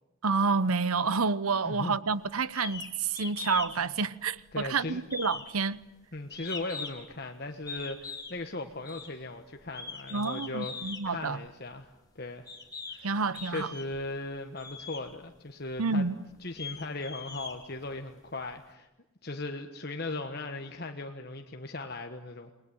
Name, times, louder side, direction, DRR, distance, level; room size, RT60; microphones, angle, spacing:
voice 1, 0.2-5.8 10.1-11.4 13.0-13.7 15.8-16.2, right 4 dB, 85° right, 1.0 m, -29 dB
voice 2, 1.6-2.0 4.5-5.0 6.1-12.5 12.9-13.1 13.5-16.0 16.4-18.9 19.2-22.5, left 2 dB, 45° left, 1.4 m, -38 dB
sound 1, 2.6-2.9 3.1-3.7 4.0-4.7 5.1-7.1 7.7-8.4 8.8-9.1 9.7-11.0 11.8-11.9 12.5-13.0 13.3-14.0 14.6-15.0 15.7-15.8 16.3-18.1, left 4 dB, 15° left, 2.9 m, -40 dB
29.5 x 20.5 x 9.5 m
head